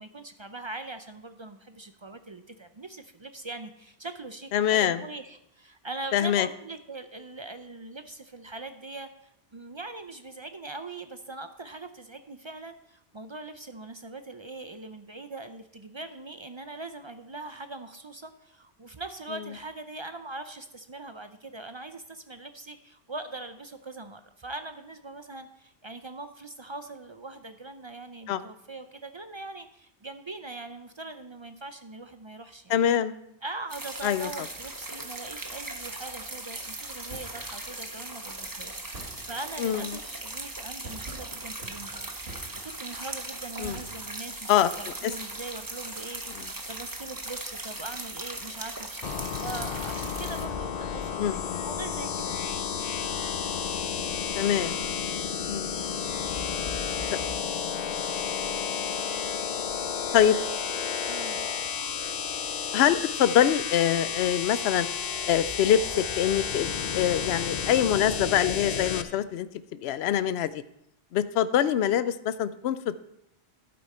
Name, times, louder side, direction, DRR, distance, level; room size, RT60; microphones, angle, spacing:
voice 1, 0.0-32.8 33.4-42.1 42.6-52.4 61.1-61.5, right 2 dB, 35° right, 8 dB, 0.5 m, -41 dB
voice 2, 4.5-5.0 6.1-6.5 28.3-28.5 32.7-33.1 34.0-34.3 39.6-39.9 43.6-43.8 44.5-44.7 45.0-45.1 46.3-46.5 51.2-51.7 54.4-54.8 55.5-55.8 60.1-60.4 62.7-64.9 65.3-69.5 69.8-70.6 71.1-73.0, left 10 dB, 75° left, 14 dB, 0.8 m, -24 dB
sound 1, 33.7-50.5, right 2 dB, 20° right, 0.9 m, -39 dB
sound 2, 37.0-37.6 38.9-39.7 40.8-43.0 43.6-44.4, right 2 dB, 70° right, 2.0 m, -46 dB
sound 3, 49.0-69.0, left 7 dB, 45° left, 0.6 m, -31 dB
11.5 x 8.6 x 4.2 m, 0.79 s
omnidirectional pair, 1.1 m